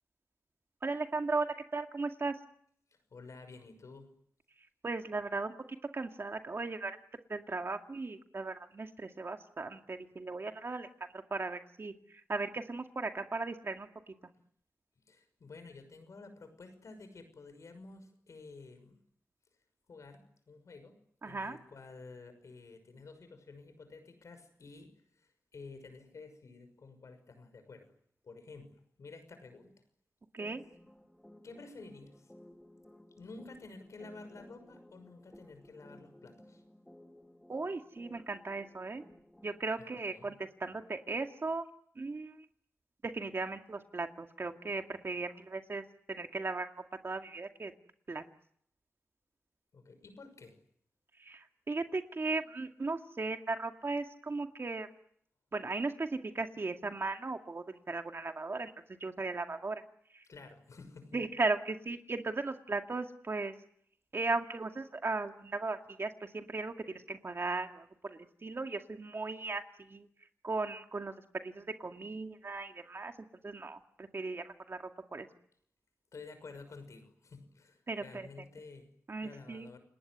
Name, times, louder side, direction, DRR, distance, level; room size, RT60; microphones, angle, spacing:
voice 1, 0.8-2.4 4.6-7.0 7.3-10.9 11.1-14.1 21.2-21.6 30.3-30.6 37.5-39.0 39.4-41.7 42.0-42.5 43.0-46.7 47.0-47.7 48.1-48.2 51.2-54.9 55.5-59.8 60.1-60.3 61.1-63.5 64.1-73.2 73.4-75.3 77.9-78.3 79.1-79.7, right 3 dB, 50° right, 5 dB, 2.1 m, -37 dB
voice 2, 2.9-4.1 15.1-19.0 19.9-21.0 21.2-27.9 28.2-29.7 31.4-32.3 33.2-36.6 40.1-40.3 49.7-50.6 60.3-61.2 76.1-78.9 79.2-79.8, left 3 dB, 90° left, 9 dB, 6.0 m, -51 dB
sound 1, 30.4-39.7, left 1 dB, 10° left, 2.9 m, -58 dB
29.0 x 19.5 x 9.6 m, 0.68 s
wide cardioid pair, 90°, 5 cm